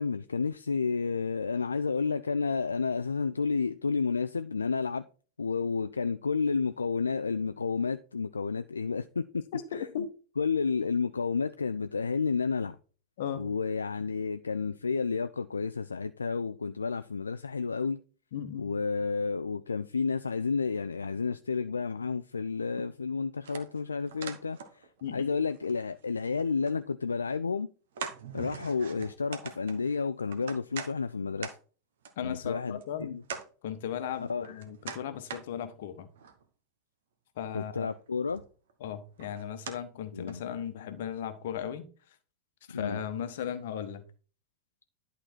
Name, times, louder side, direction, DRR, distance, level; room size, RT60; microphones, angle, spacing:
voice 1, 0.0-5.1 5.4-9.4 9.7-10.1 10.4-12.8 13.4-18.0 18.6-27.7 28.3-31.6 32.2-33.2 34.2-34.5 37.5-38.4 40.1-40.4 42.7-43.0, left 5 dB, 75° left, 0.3 m, -31 dB
voice 2, 9.5-10.1 13.2-13.4 18.3-18.6 25.0-25.3 32.2-33.2 33.6-36.1 37.4-37.9 38.8-41.9 42.7-44.0, left 9 dB, 55° left, 1.0 m, -36 dB
sound 1, 23.4-25.1 25.3-26.8 27.3-27.4 28.0-30.9 31.4-31.6 32.1-32.2 32.8-32.9 33.3-33.5 34.0-35.4 36.0-36.4 37.8-37.9 38.3-38.7 39.2-39.8 40.3-40.4 41.0-41.1, right 6 dB, 60° right, 1.1 m, -42 dB
11.0 x 4.2 x 4.4 m
figure-of-eight pair, 90°, 0 cm